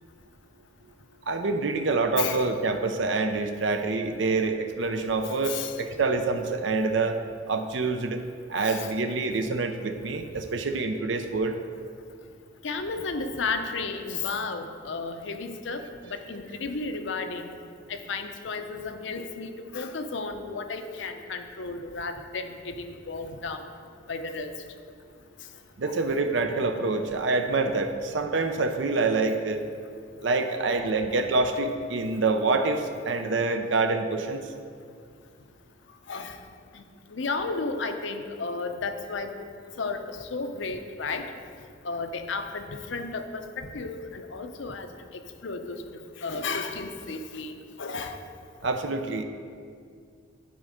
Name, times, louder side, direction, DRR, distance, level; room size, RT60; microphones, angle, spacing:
voice 1, 1.3-7.2 7.5-8.2 8.5-11.6 25.8-29.6 30.2-34.5 48.6-49.2, right 3 dB, 65° right, 6 dB, 0.6 m, -26 dB
voice 2, 5.2-5.7 8.6-8.9 12.6-15.8 16.1-17.5 17.9-23.6 24.1-24.5 25.9-26.0 36.1-36.4 36.7-36.8 37.1-39.5 39.8-41.3 41.8-44.9 45.4-45.8 46.2-48.2, left 4 dB, 70° left, 7 dB, 0.6 m, -33 dB
11.5 x 4.2 x 5.0 m, 2.2 s
head